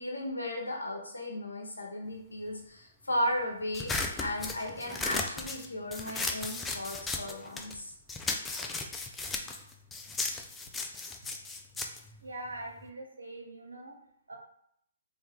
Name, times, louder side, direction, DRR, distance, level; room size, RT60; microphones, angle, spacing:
voice 1, 0.0-3.9 4.2-7.9, left 1 dB, 85° left, 0 dB, 1.0 m, -35 dB
sound 1, 3.7-7.8 8.1-12.9, left 3 dB, 10° left, 0.4 m, -36 dB
voice 2, 12.2-14.0 14.3-14.4, right 2 dB, 85° right, 1 dB, 0.9 m, -42 dB
3.2 x 2.8 x 3.6 m, 0.70 s
figure-of-eight pair, 130°, 0 cm